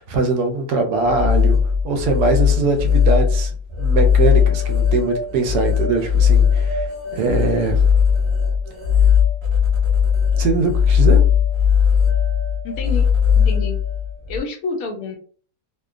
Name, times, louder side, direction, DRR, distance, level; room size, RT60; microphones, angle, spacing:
voice 1, 0.0-1.6 1.8-7.8 10.4-11.2, right 3 dB, 75° right, 4 dB, 1.1 m, -22 dB
sound 1, 1.0-14.4, left 7 dB, 45° right, 0.4 m, -18 dB
voice 2, 12.6-13.1 13.4-13.8 14.3-15.2, left 3 dB, 70° left, 3 dB, 0.9 m, -28 dB
2.8 x 2.2 x 2.4 m, 0.43 s
omnidirectional pair, 1.8 m